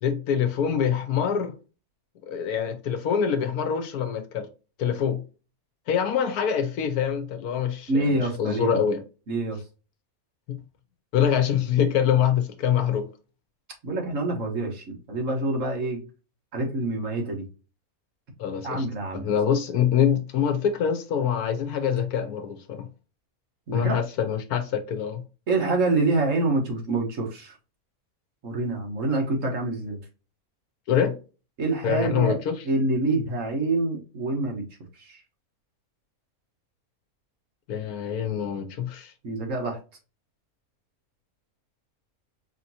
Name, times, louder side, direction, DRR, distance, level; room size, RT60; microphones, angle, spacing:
voice 1, 0.0-1.5 2.2-4.5 4.8-5.2 5.9-9.0 10.5-10.6 11.1-13.1 18.4-18.9 19.1-22.9 23.7-25.2 30.9-31.1 31.8-32.6 37.7-39.1, left 8 dB, 90° left, 1.3 m, -25 dB
voice 2, 7.9-8.8 9.3-9.6 13.8-16.0 16.5-17.4 18.6-19.3 23.7-24.0 25.5-27.6 28.4-30.0 31.6-32.4 32.6-34.6 35.0-35.2 39.2-39.8, right 2 dB, 60° right, 1.5 m, -26 dB
5.0 x 2.9 x 2.7 m
omnidirectional pair, 1.6 m